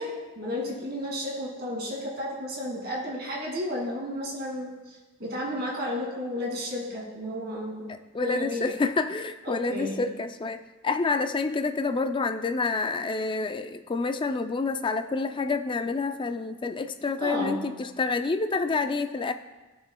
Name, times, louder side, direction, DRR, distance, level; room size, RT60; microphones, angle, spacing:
voice 1, 0.0-7.9 8.2-8.7 9.4-10.0 17.2-17.6, left 1 dB, 45° right, -2 dB, 2.2 m, -33 dB
voice 2, 8.1-19.3, left 3 dB, 20° left, 8 dB, 0.3 m, -28 dB
16.0 x 6.4 x 2.2 m, 1.2 s
head